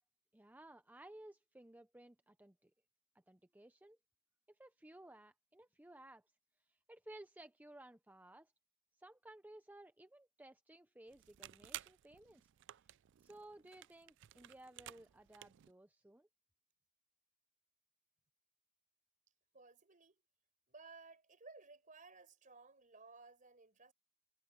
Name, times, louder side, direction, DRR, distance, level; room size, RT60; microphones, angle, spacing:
voice 1, 0.3-2.7 3.3-4.0 4.5-6.2 6.7-8.5 9.0-12.4 13.2-16.3, right 1 dB, 10° right, 0.6 m, -58 dB
sound 1, 11.1-15.7, right 14 dB, 60° right, 0.3 m, -54 dB
voice 2, 19.5-20.2 20.7-23.9, right 3 dB, 40° right, 5.2 m, -58 dB
head